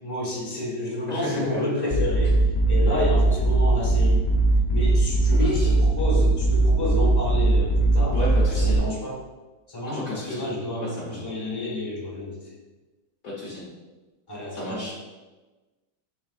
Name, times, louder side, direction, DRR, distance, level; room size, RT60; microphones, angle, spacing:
voice 1, 0.0-2.4 2.7-4.2 4.7-8.2 8.5-9.2 9.7-12.4 14.3-14.9, left 1 dB, 10° left, -5 dB, 1.6 m, -30 dB
voice 2, 1.1-1.6 2.8-3.1 5.4-5.7 8.1-8.8 9.8-10.4 10.8-11.2 13.2-13.7 14.5-14.9, left 2 dB, 55° left, -6 dB, 1.5 m, -32 dB
sound 1, 1.9-8.8, right 2 dB, 40° left, 1.3 m, -20 dB
9.6 x 4.5 x 2.5 m, 1.2 s
omnidirectional pair, 2.1 m